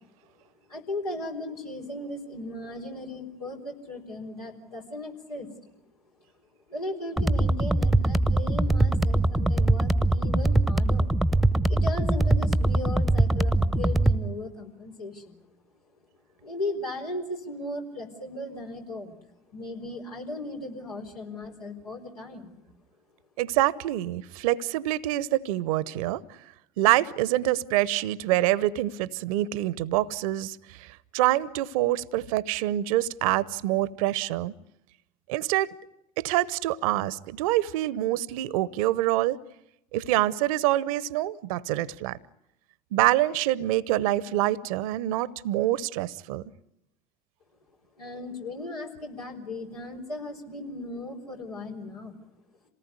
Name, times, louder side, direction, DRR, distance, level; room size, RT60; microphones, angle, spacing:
voice 1, 0.7-5.5 6.7-11.1 11.7-15.4 16.4-19.2 19.5-22.6 48.0-52.2, left 2 dB, 85° left, 0 dB, 4.3 m, -37 dB
sound 1, 7.2-14.2, right 2 dB, ahead, 1.1 m, -22 dB
voice 2, 23.4-26.2 26.8-34.5 35.3-35.7 36.2-39.4 39.9-42.2 42.9-46.4, right 15 dB, 65° right, 21 dB, 0.9 m, -26 dB
27.5 x 18.5 x 9.6 m, 0.85 s
figure-of-eight pair, 65°, 19 cm